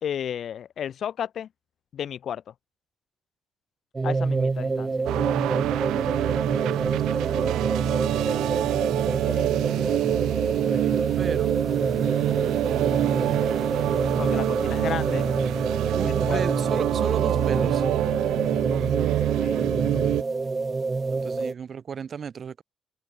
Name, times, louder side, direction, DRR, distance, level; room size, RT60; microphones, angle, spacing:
voice 1, 0.0-1.5 1.9-2.4 4.0-5.1 8.2-8.4 9.3-9.5 14.2-15.3 16.0-16.4 19.4-20.3, left 9 dB, 65° left, 0.8 m, -33 dB
sound 1, 3.9-21.5, right 3 dB, 25° right, 0.9 m, -28 dB
sound 2, 5.0-20.2, right 15 dB, 90° right, 0.4 m, -26 dB
voice 2, 6.6-7.9 10.1-11.6 12.2-13.7 15.9-17.8 21.1-22.6, right 7 dB, 50° right, 4.2 m, -35 dB
sound 3, 8.7-17.9, equal, ahead, 7.7 m, -53 dB
cardioid pair, 90°, 0 cm